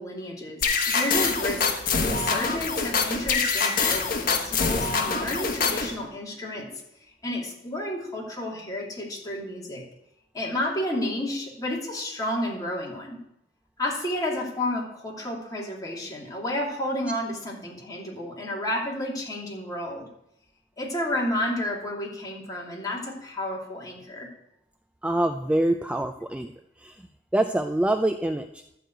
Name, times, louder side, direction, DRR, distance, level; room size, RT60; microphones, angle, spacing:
voice 1, 0.0-1.7 2.0-6.7 7.2-9.8 10.3-13.2 13.8-20.1 20.8-24.3, left 1 dB, 20° left, -3 dB, 2.7 m, -31 dB
sound 1, 0.6-5.9, left 4 dB, 55° left, 1.3 m, -25 dB
voice 2, 25.0-26.5 26.8-27.0 27.3-28.5, right 1 dB, 5° right, 6 dB, 0.4 m, -25 dB
12.5 x 4.8 x 7.8 m, 0.79 s
head